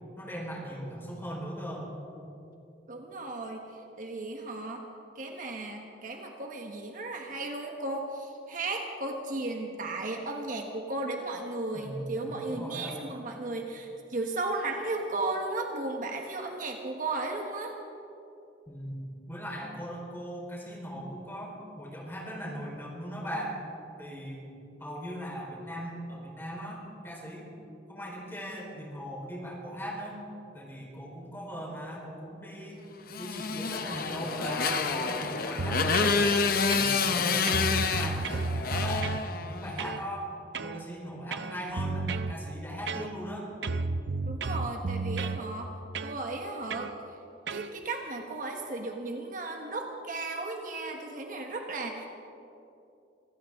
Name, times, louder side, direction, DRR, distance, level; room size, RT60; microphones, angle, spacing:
voice 1, 0.2-1.9 11.7-13.0 18.7-23.6 24.0-24.5 24.8-27.5 27.9-30.2 30.5-32.8 33.2-36.4 36.7-39.2 39.5-40.3 40.6-43.5, equal, 15° left, -3 dB, 4.3 m, -39 dB
voice 2, 2.9-3.6 4.0-4.8 5.1-17.7 44.3-45.7 46.0-46.9 47.5-52.1, right 2 dB, 50° right, 2 dB, 1.3 m, -35 dB
Motorcycle, 33.1-39.8, left 5 dB, 55° left, 0.9 m, -28 dB
sound 1, 35.6-36.2 36.7-37.2 37.5-39.3 39.8-40.0 40.5-40.8 41.3-42.4 42.9-43.3 43.6-45.4 45.9-46.2 46.7-46.9 47.5-47.7, right 3 dB, 75° right, 0.6 m, -32 dB
25.5 x 15.0 x 3.7 m, 2.8 s
head